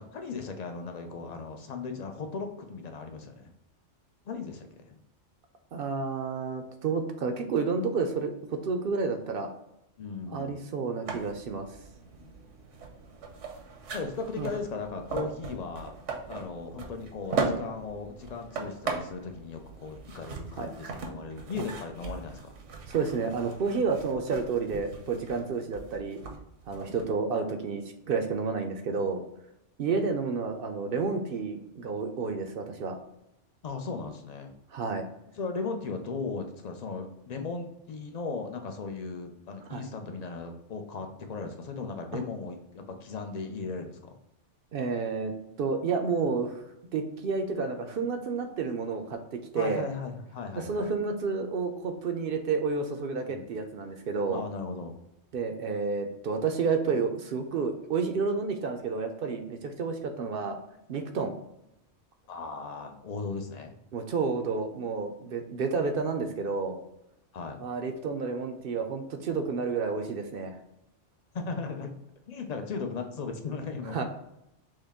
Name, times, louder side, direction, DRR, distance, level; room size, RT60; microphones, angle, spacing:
voice 1, 0.0-3.5 4.2-5.0 10.0-10.7 12.2-12.4 13.9-15.9 16.3-22.5 26.8-27.0 33.6-34.5 35.4-44.1 49.5-50.9 53.3-53.6 54.3-55.0 62.3-63.7 67.3-67.6 71.3-71.9 72.3-74.0, left 4 dB, 50° left, 5 dB, 0.5 m, -37 dB
voice 2, 5.7-9.5 10.3-11.7 14.4-14.5 20.6-20.7 21.6-21.7 22.9-26.2 26.7-29.2 29.8-33.0 34.7-35.1 39.7-39.8 42.1-42.2 44.7-45.3 45.6-46.6 46.9-49.9 50.6-54.4 55.3-60.6 60.9-61.3 63.9-66.8 67.6-70.6 73.9-74.0, right 4 dB, 60° right, 6 dB, 0.7 m, -30 dB
sound 1, 11.1-27.1, right 4 dB, 80° right, 1.1 m, -38 dB
6.4 x 2.2 x 3.5 m, 0.83 s
omnidirectional pair, 1.2 m